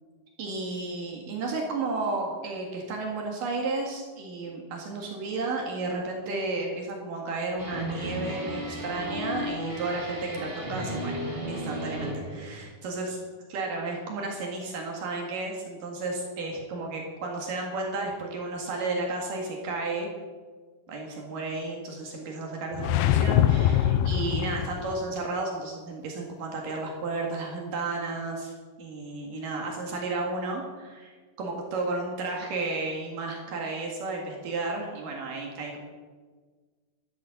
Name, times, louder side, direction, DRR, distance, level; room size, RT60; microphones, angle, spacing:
voice 1, 0.4-11.2 11.5-13.2 13.5-20.1 20.9-35.8, right 3 dB, 75° right, 0 dB, 3.5 m, -33 dB
sound 1, 7.6-12.6, equal, 20° right, 2.3 m, -34 dB
sound 2, 22.7-25.0, left 11 dB, 85° left, 2.3 m, -23 dB
13.0 x 12.5 x 7.1 m, 1.5 s
omnidirectional pair, 3.9 m